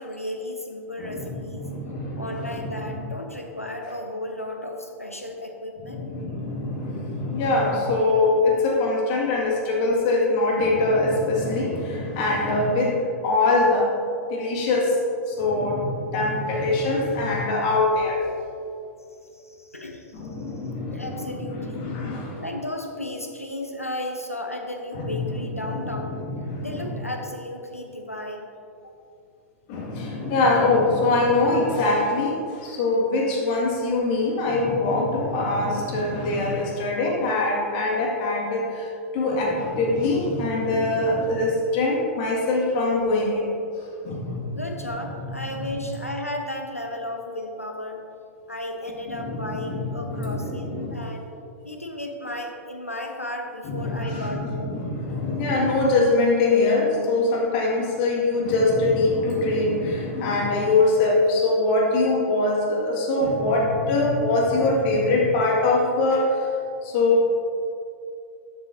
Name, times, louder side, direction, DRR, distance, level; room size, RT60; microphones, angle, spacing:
voice 1, 0.0-1.7 2.2-6.0 19.3-20.2 20.9-21.9 22.4-26.2 26.6-28.5 28.8-28.9 44.5-48.0 48.5-51.2 51.6-54.8, left 1 dB, 90° left, 3 dB, 1.0 m, -34 dB
voice 2, 1.0-3.0 5.8-13.9 14.2-15.0 15.3-18.2 20.1-22.4 24.9-27.0 29.7-38.9 39.1-43.5 44.0-44.9 45.5-45.6 49.1-51.0 53.6-66.5 66.8-67.4, left 2 dB, 45° left, -2 dB, 2.1 m, -23 dB
12.0 x 7.9 x 2.8 m, 2.5 s
figure-of-eight pair, 100°, 8 cm